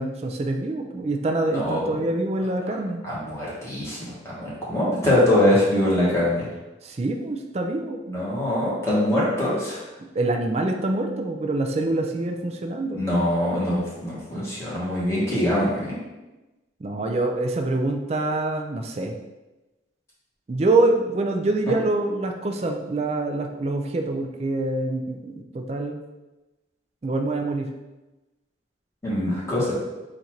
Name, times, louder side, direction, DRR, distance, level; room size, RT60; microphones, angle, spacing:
voice 1, 0.0-3.0 6.8-8.2 10.1-13.0 16.8-19.2 20.5-26.0 27.0-27.7, right 2 dB, 35° right, 3 dB, 0.3 m, -25 dB
voice 2, 1.5-2.0 3.0-6.5 8.1-9.9 12.9-16.0 29.0-29.7, left 1 dB, 15° left, -8 dB, 1.3 m, -23 dB
4.1 x 2.5 x 4.4 m, 1.1 s
head